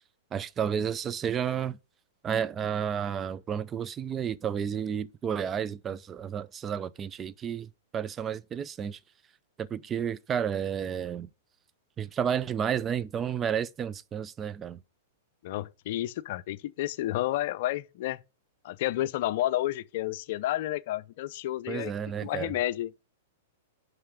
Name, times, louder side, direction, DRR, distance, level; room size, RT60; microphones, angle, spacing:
voice 1, 0.3-1.8 2.2-9.0 9.6-11.3 12.0-14.8 21.7-22.5, right 8 dB, 25° right, 0.4 m, -31 dB
voice 2, 15.4-18.2 18.6-21.9 22.2-22.9, left 14 dB, 55° left, 0.6 m, -31 dB
5.7 x 5.7 x 6.6 m
hypercardioid pair, 120°, 0 cm